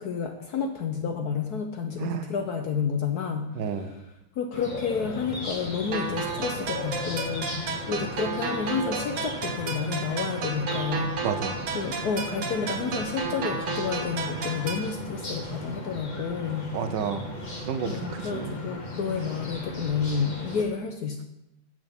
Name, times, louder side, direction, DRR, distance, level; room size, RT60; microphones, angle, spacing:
voice 1, 0.0-11.1 11.7-16.8 17.8-21.2, left 6 dB, 65° left, 4 dB, 1.0 m, -30 dB
voice 2, 3.6-4.0 11.2-11.6 16.7-17.3 17.6-18.5, right 7 dB, 65° right, 9 dB, 1.2 m, -31 dB
sound 1, 4.5-20.6, left 1 dB, 30° left, 1.0 m, -37 dB
sound 2, 5.9-14.9, right 5 dB, 85° right, 2.0 m, -33 dB
9.2 x 6.4 x 5.2 m, 0.87 s
omnidirectional pair, 2.3 m